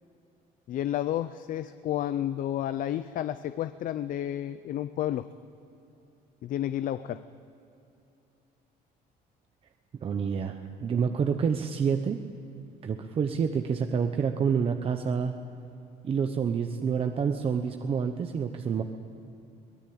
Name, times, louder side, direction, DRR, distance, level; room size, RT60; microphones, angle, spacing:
voice 1, 0.7-5.3 6.4-7.2, left 12 dB, 55° left, 12 dB, 0.6 m, -31 dB
voice 2, 9.9-12.2 12.8-15.3 16.0-18.8, right 6 dB, 35° right, 6 dB, 1.0 m, -28 dB
23.5 x 19.0 x 8.7 m, 2.7 s
cardioid pair, 150°, 17 cm